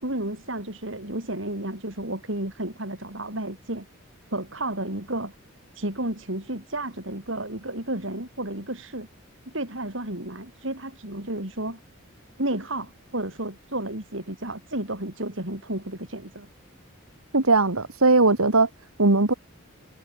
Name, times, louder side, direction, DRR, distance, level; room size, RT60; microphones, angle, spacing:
voice 1, 0.0-3.8 4.3-5.3 5.7-9.1 9.5-11.8 12.4-16.5, right 1 dB, 60° right, 5.1 m, -32 dB
voice 2, 17.3-18.7 19.0-19.3, right 3 dB, 90° right, 2.3 m, -19 dB
head